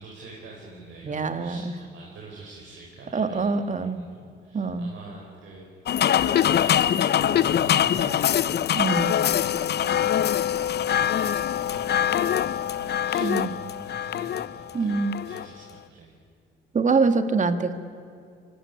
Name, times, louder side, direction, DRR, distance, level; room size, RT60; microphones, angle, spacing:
voice 1, 0.0-16.2, right 3 dB, 70° right, -2 dB, 4.9 m, -45 dB
voice 2, 1.0-1.7 3.1-4.0 4.5-4.9 8.8-9.2 13.2-13.5 14.7-15.2 16.7-17.7, right 4 dB, 40° right, 9 dB, 1.9 m, -24 dB
sound 1, 5.9-15.5, left 10 dB, 55° left, 0.6 m, -23 dB
25.5 x 19.0 x 9.7 m, 2.4 s
cardioid pair, 90°, 20 cm